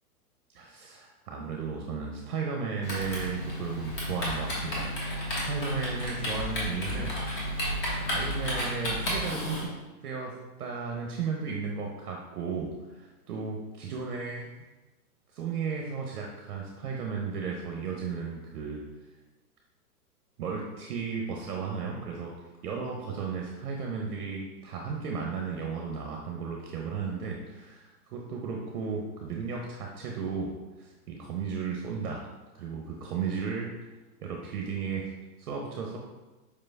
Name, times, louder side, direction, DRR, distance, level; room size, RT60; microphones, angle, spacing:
voice 1, 0.5-9.7 10.0-14.5 15.3-18.8 20.4-22.3 22.6-32.3 32.5-33.7 34.2-35.1 35.4-36.0, right 5 dB, 70° right, 0 dB, 0.7 m, -35 dB
Typing, 2.8-9.7, equal, 35° left, 1.2 m, -32 dB
4.9 x 3.1 x 2.2 m, 1.1 s
hypercardioid pair, 130°, 47 cm